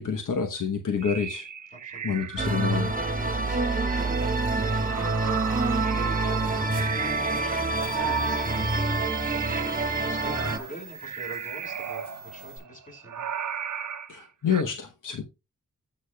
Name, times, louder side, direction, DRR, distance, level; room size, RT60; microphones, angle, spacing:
voice 1, 0.0-1.5 2.0-2.9 14.1-15.2, left 6 dB, 85° left, 1.1 m, -28 dB
sound 1, 1.0-3.3 3.7-8.9 9.2-14.6, right 7 dB, 70° right, 0.7 m, -36 dB
voice 2, 1.7-2.5 3.2-13.3, right 1 dB, 25° left, 5.3 m, -45 dB
sound 2, 2.4-10.6, right 3 dB, 25° right, 1.4 m, -26 dB
sound 3, 6.2-12.6, right 3 dB, 45° left, 5.1 m, -47 dB
15.0 x 6.4 x 2.3 m
cardioid pair, 65°, 31 cm